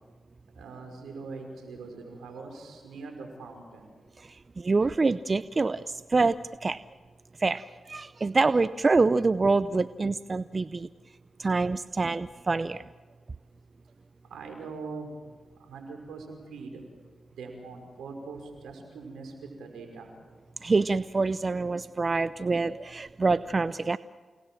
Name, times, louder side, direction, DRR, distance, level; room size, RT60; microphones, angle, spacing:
voice 1, 0.5-3.9 14.3-15.1 15.6-16.8 17.4-20.1, right 4 dB, 85° right, 4 dB, 5.4 m, -42 dB
voice 2, 4.6-6.4 6.6-6.8 7.4-10.9 11.4-12.8 20.6-24.0, right 3 dB, 40° right, 15 dB, 0.6 m, -26 dB
29.5 x 19.0 x 7.6 m, 1.5 s
supercardioid pair, 40°, 0 cm